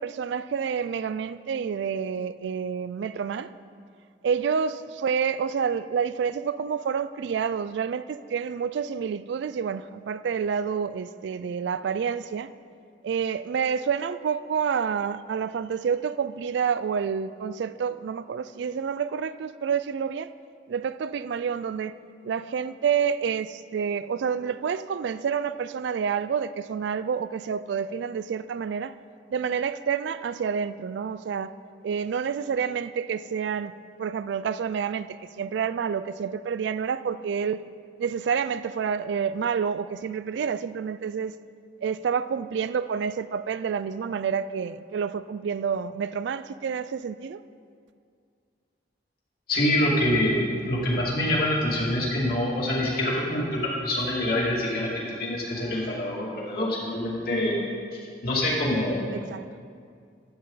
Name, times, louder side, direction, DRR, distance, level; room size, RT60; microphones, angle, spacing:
voice 1, 0.0-3.5 4.2-12.5 13.0-20.3 20.7-21.9 22.2-29.0 29.3-31.5 31.8-33.7 34.0-37.6 38.0-41.4 41.8-47.4 59.1-59.5, right 6 dB, 70° right, 0.3 m, -28 dB
voice 2, 49.5-54.9 55.2-57.6 57.9-59.0, left 1 dB, 55° left, 2.6 m, -25 dB
12.5 x 8.8 x 4.0 m
head